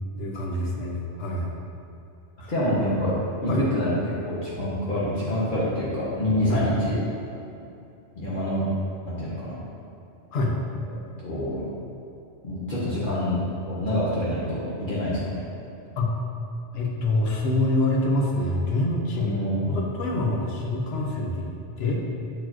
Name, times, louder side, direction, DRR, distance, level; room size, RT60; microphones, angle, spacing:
voice 1, 0.2-1.5 2.4-2.5 3.5-3.6 6.5-6.7 10.3-10.5 16.0-16.1 16.7-19.3 19.7-21.5 21.8-22.0, left 2 dB, 65° left, -1 dB, 1.0 m, -25 dB
voice 2, 2.5-3.1 3.4-7.0 8.2-8.7 9.0-9.6 10.9-11.6 12.4-14.6 14.9-15.4 19.1-19.8, equal, 50° left, -9 dB, 1.2 m, -26 dB
7.8 x 4.5 x 3.0 m, 2.7 s
omnidirectional pair, 1.2 m